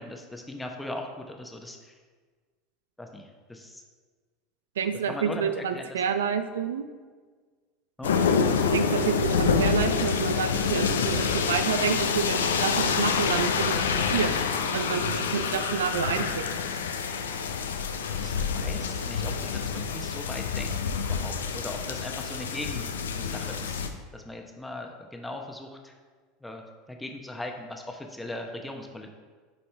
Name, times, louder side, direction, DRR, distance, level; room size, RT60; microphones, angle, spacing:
voice 1, 0.0-1.9 3.0-3.8 5.1-6.0 8.0-8.2 18.1-23.9 24.1-25.9 26.4-26.6 26.9-29.1, left 1 dB, 10° left, 2 dB, 1.0 m, -39 dB
voice 2, 4.8-6.8 8.7-14.3 14.7-16.6, right 7 dB, 85° right, 9 dB, 0.4 m, -29 dB
sound 1, 8.0-23.9, left 6 dB, 90° left, 0.5 m, -27 dB
9.6 x 4.2 x 3.4 m, 1.5 s
hypercardioid pair, 90°, 0 cm